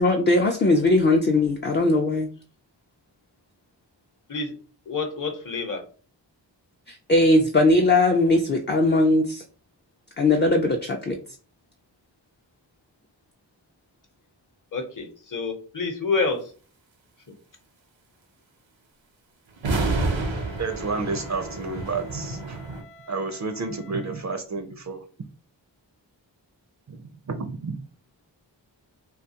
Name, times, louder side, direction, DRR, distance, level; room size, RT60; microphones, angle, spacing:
voice 1, 0.0-2.3 6.9-9.4 10.2-11.2, left 2 dB, 25° left, 3 dB, 0.3 m, -20 dB
voice 2, 4.9-5.8 14.7-16.5 17.3-17.4, left 4 dB, 45° left, 5 dB, 0.8 m, -28 dB
sound 1, 19.6-22.8, right 3 dB, 85° right, 0.6 m, -29 dB
Wind instrument woodwind instrument, 19.7-24.3, left 3 dB, 80° left, 0.8 m, -49 dB
voice 3, 20.6-22.7 23.1-25.0 26.9-27.8, right 4 dB, 40° right, 7 dB, 0.4 m, -31 dB
2.4 x 2.3 x 2.7 m, 0.40 s
cardioid pair, 40°, 45 cm